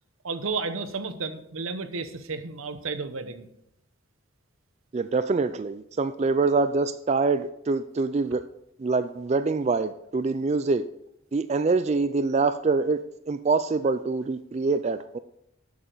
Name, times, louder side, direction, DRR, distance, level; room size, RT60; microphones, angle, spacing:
voice 1, 0.2-3.5, right 4 dB, 80° right, 10 dB, 0.9 m, -32 dB
voice 2, 4.9-8.4 8.8-10.8 11.3-15.2, right 3 dB, 30° right, 12 dB, 0.3 m, -25 dB
11.5 x 8.4 x 3.9 m, 0.76 s
head